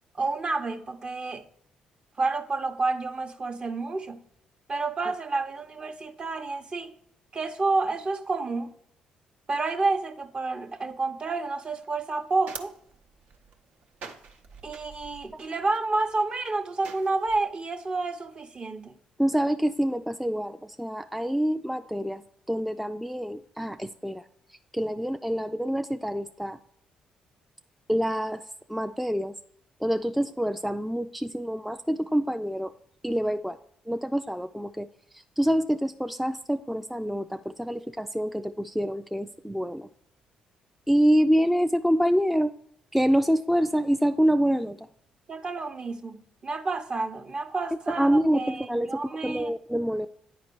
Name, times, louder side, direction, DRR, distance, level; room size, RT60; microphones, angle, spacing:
voice 1, 0.1-1.4 2.2-4.2 4.7-6.9 7.3-8.7 9.5-12.7 14.6-18.9 45.3-49.5, right 3 dB, 40° right, 0.8 m, -29 dB
sound 1, 11.8-17.4, right 5 dB, 70° right, 0.8 m, -47 dB
voice 2, 19.2-22.2 22.5-24.2 24.7-26.6 27.9-28.4 28.7-29.3 29.8-32.7 33.0-33.6 33.9-34.9 35.1-39.9 40.9-42.5 42.9-44.8 47.9-48.9 49.2-50.1, equal, ahead, 0.3 m, -26 dB
9.6 x 4.0 x 4.5 m
supercardioid pair, 65°, 3 cm